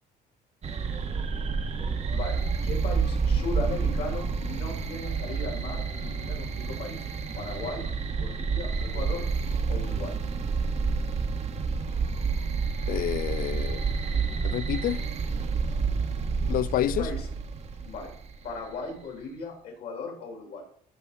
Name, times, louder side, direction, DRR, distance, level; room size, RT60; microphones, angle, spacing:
sound 1, 0.6-18.6, right 5 dB, 40° right, 1.2 m, -29 dB
voice 1, 1.2-7.0 7.4-9.3 9.7-10.2 17.0-17.3 17.8-18.1 18.4-20.6, left 3 dB, 75° left, 4.4 m, -37 dB
voice 2, 12.9-13.8 14.4-15.0 16.5-17.1, left 12 dB, 60° left, 0.4 m, -28 dB
15.0 x 5.6 x 4.1 m
cardioid pair, 110°, 17 cm